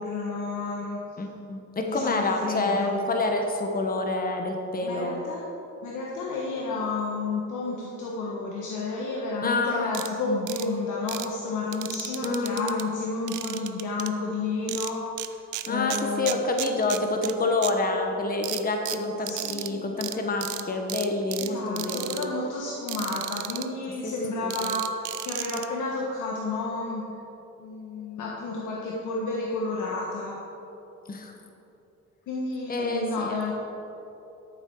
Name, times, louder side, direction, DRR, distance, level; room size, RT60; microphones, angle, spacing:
voice 1, 0.0-1.0 1.9-3.0 4.8-5.4 5.8-15.4 15.7-16.4 19.2-19.8 21.4-24.9 25.2-27.0 27.6-30.4 32.3-33.5, left 3 dB, 80° left, -3 dB, 1.4 m, -31 dB
voice 2, 1.2-5.2 6.7-6.8 9.4-10.0 12.2-12.8 15.7-22.2 24.0-24.7 31.1-31.3 32.7-33.4, left 2 dB, 30° left, 3 dB, 1.3 m, -28 dB
sound 1, 9.9-10.1 10.5-10.7 11.1-11.3 11.7-12.8 13.3-14.1 14.7-15.3 15.5-17.3 17.6-17.7 18.4-19.7 20.0-20.1 20.4-20.6 20.9-21.5 21.8-22.3 22.9-23.6 24.5-25.7, right 14 dB, 75° right, 0.6 m, -34 dB
13.5 x 7.4 x 4.7 m, 2.9 s
cardioid pair, 90°, 30 cm